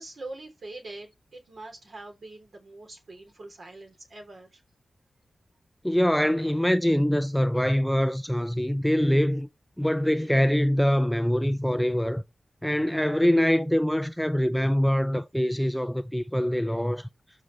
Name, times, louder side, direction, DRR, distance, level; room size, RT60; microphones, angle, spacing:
voice 1, 0.0-4.6, right 2 dB, 60° right, 3.2 m, -43 dB
voice 2, 5.8-9.5 9.8-12.2 12.6-17.1, equal, ahead, 0.4 m, -24 dB
12.5 x 5.2 x 3.2 m
wide cardioid pair, 115°, 0 cm